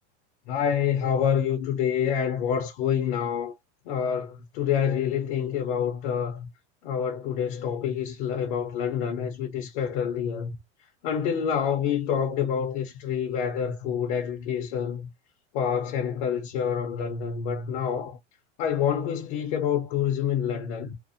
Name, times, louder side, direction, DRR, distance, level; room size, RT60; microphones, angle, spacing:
voice 1, 0.5-3.5 3.9-6.5 6.8-10.5 11.0-15.1 15.5-18.2 18.6-20.9, left 8 dB, 45° left, 0.5 m, -27 dB
2.6 x 2.0 x 2.4 m
supercardioid pair, 165°, 36 cm